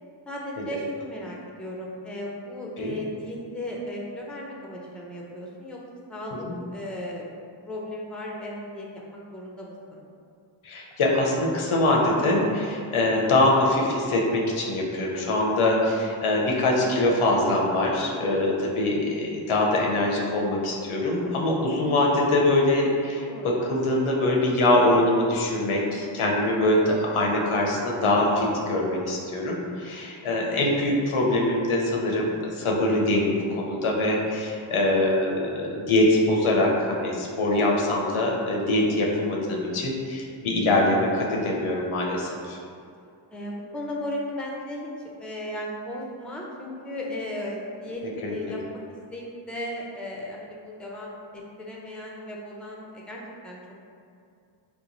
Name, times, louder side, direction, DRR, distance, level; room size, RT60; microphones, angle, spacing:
voice 1, 0.3-5.8 6.1-6.5 6.7-7.3 7.7-10.0 23.3-23.7 30.8-31.1 43.3-44.8 45.2-48.0 48.3-48.8 49.1-53.6, left 1 dB, ahead, -3 dB, 0.5 m, -36 dB
voice 2, 10.6-42.6 48.2-48.6, left 1 dB, 80° left, -2 dB, 0.7 m, -23 dB
2.9 x 2.1 x 3.9 m, 2.4 s
cardioid pair, 40°, 49 cm